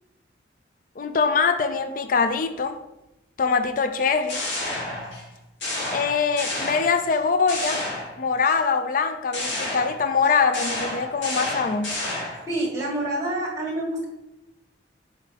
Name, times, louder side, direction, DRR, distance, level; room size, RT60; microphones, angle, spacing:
voice 1, 1.0-2.8 3.4-4.4 5.9-7.8 8.2-12.0, left 5 dB, 45° left, 9 dB, 0.4 m, -23 dB
sound 1, 4.0-5.3 5.6-7.2 7.5-8.5 9.3-12.5, left 1 dB, 85° left, 2.3 m, -30 dB
voice 2, 12.5-14.1, right 1 dB, 20° right, -2 dB, 1.7 m, -27 dB
6.7 x 4.5 x 3.5 m, 0.92 s
head